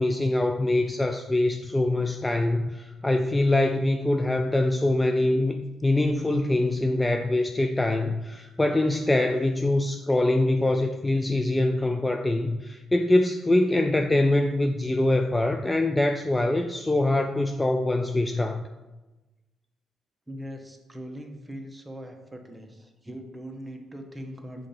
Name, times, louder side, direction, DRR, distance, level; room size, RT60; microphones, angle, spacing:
voice 1, 0.0-18.7, left 2 dB, 15° left, 6 dB, 0.4 m, -24 dB
voice 2, 20.3-24.7, equal, 10° right, 3 dB, 1.1 m, -40 dB
5.3 x 3.9 x 5.6 m, 1.1 s
supercardioid pair, 65°, 0 cm